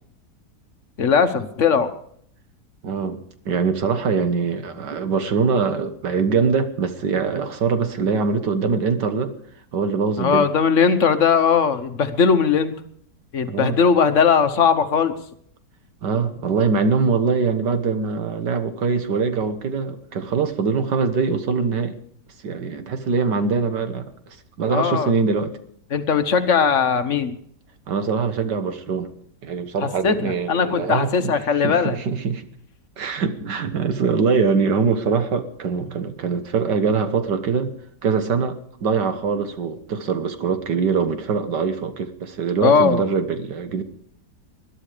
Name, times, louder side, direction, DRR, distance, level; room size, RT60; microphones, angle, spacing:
voice 1, 1.0-1.9 10.2-12.7 13.3-15.1 24.7-25.1 25.9-27.3 30.0-31.9 42.6-43.0, left 6 dB, 50° left, 1.3 m, -19 dB
voice 2, 2.8-9.3 9.7-10.5 13.5-13.8 16.0-22.0 22.4-25.5 27.9-29.1 29.4-31.3 31.6-32.5 33.0-37.7 38.0-43.8, right 5 dB, 90° right, 2.0 m, -23 dB
21.0 x 11.5 x 5.0 m
omnidirectional pair, 1.8 m